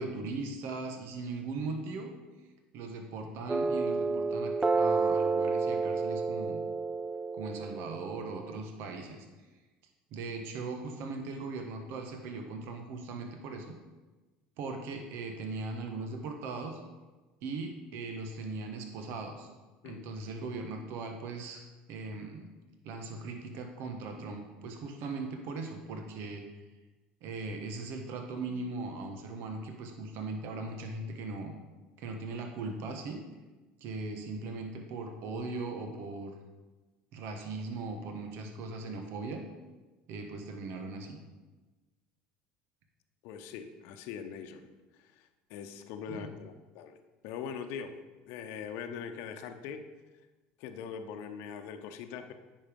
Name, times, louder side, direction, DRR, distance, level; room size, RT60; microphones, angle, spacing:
voice 1, 0.0-2.1 2.7-6.6 7.3-9.3 10.1-13.7 14.6-16.8 17.4-19.5 19.8-21.6 21.9-22.5 22.8-26.5 27.2-31.5 32.0-33.2 33.8-36.4 37.1-39.4 40.1-41.2 46.1-46.3, right 3 dB, 65° right, 4 dB, 1.3 m, -39 dB
sound 1, 3.5-8.6, right 4 dB, 20° right, 0.5 m, -30 dB
voice 2, 43.2-44.7 45.0-47.0 47.2-48.0 48.3-49.8 50.6-52.3, left 7 dB, 70° left, 7 dB, 0.9 m, -42 dB
9.4 x 5.6 x 5.3 m, 1.2 s
supercardioid pair, 90°, 4 cm